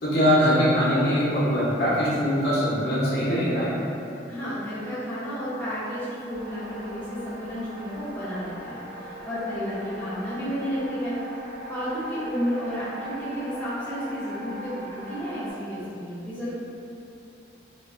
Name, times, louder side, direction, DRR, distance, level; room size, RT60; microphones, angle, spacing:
voice 1, 0.0-3.7, equal, 65° left, -9 dB, 0.7 m, -22 dB
voice 2, 4.3-11.2 11.7-16.5, equal, 10° left, -13 dB, 0.5 m, -32 dB
sound 1, 6.3-15.5, right 1 dB, 50° right, 0.4 m, -40 dB
2.5 x 2.3 x 2.3 m, 2.7 s
head